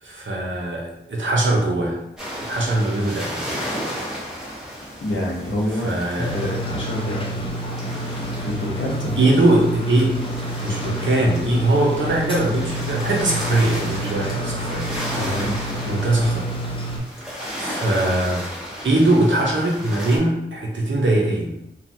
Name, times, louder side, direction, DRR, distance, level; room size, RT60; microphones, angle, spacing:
voice 1, 0.0-2.0 2.4-3.6 5.8-6.3 9.2-14.9 15.9-16.4 17.6-18.5 18.8-21.6, right 1 dB, 90° right, -2 dB, 0.7 m, -21 dB
sound 1, 2.2-20.2, equal, 5° right, 0.9 m, -34 dB
voice 2, 5.0-5.9 6.3-7.9 8.4-9.1 15.1-15.5, left 1 dB, 85° left, -3 dB, 0.7 m, -27 dB
sound 2, 6.2-17.0, right 1 dB, 30° left, 0.5 m, -29 dB
2.8 x 2.2 x 2.6 m, 0.84 s
wide cardioid pair, 50°, 19 cm